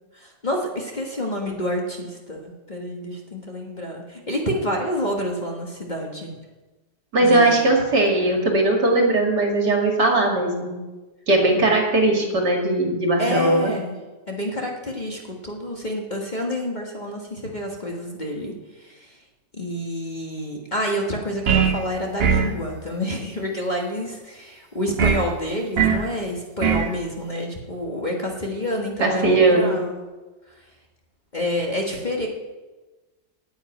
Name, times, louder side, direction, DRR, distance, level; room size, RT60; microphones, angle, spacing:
voice 1, 0.1-6.4 7.2-7.7 13.2-13.9 14.3-19.2 19.5-29.9 31.3-32.3, equal, 25° left, 0 dB, 1.5 m, -28 dB
voice 2, 7.1-10.7 11.3-13.7 29.0-29.8, right 2 dB, 65° right, 1 dB, 2.7 m, -19 dB
sound 1, 21.5-21.8 22.2-22.6 25.0-25.3 25.8-26.1 26.6-26.9, right 7 dB, 45° right, 0.9 m, -19 dB
9.5 x 8.8 x 9.2 m, 1.2 s
omnidirectional pair, 1.9 m